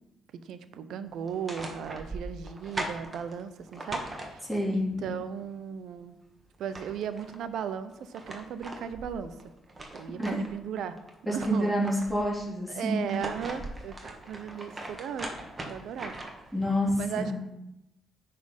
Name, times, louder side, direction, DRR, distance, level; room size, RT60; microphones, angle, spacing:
voice 1, 0.4-6.2 6.6-9.3 9.9-11.0 11.3-11.8 12.7-15.3 15.7-16.2 17.0-17.3, right 8 dB, 75° right, 12 dB, 0.7 m, -36 dB
sound 1, 1.2-4.8 6.2-6.3 6.5-7.4 7.9-10.6 11.0-12.3 12.9-16.5, right 2 dB, 25° right, 1.5 m, -40 dB
voice 2, 4.5-5.0 10.2-10.3 11.2-13.1 16.5-16.9 17.2-17.3, equal, ahead, -6 dB, 3.3 m, -28 dB
9.7 x 4.4 x 5.4 m, 0.92 s
cardioid pair, 90°, 0 cm